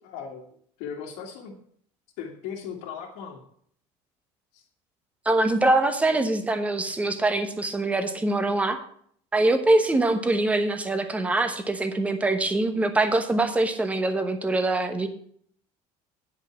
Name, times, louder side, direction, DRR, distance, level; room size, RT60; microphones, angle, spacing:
voice 1, 0.0-1.5 2.2-3.4 4.5-4.6, left 7 dB, 80° left, -5 dB, 2.0 m, -38 dB
voice 2, 5.2-8.8 9.3-15.1, right 2 dB, 10° right, 8 dB, 1.0 m, -23 dB
10.0 x 5.4 x 7.1 m, 0.62 s
cardioid pair, 155°, 13 cm